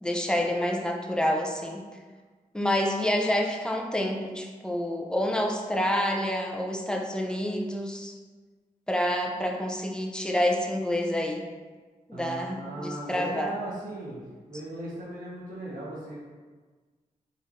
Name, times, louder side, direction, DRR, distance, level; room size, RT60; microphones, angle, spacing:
voice 1, 0.0-1.8 2.5-8.1 8.9-11.4 12.1-13.6, left 1 dB, 5° left, 1 dB, 0.6 m, -28 dB
voice 2, 12.1-14.2 14.5-16.2, right 1 dB, 75° right, -6 dB, 1.2 m, -37 dB
5.5 x 3.3 x 2.6 m, 1.4 s
cardioid pair, 80°, 14 cm